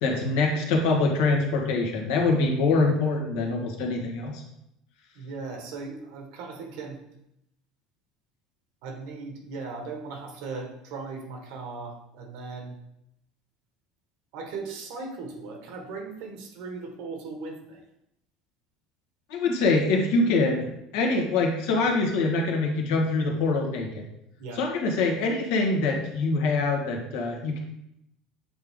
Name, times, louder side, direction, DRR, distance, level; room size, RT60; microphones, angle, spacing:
voice 1, 0.0-4.4 19.3-20.7 20.9-24.0 24.6-27.6, left 3 dB, 80° left, 1 dB, 1.3 m, -24 dB
voice 2, 5.1-7.0 8.8-12.8 14.3-17.9 21.7-22.0 24.4-24.6, right 4 dB, 75° right, 2 dB, 1.4 m, -38 dB
7.7 x 3.6 x 3.6 m, 0.80 s
cardioid pair, 145°, 0 cm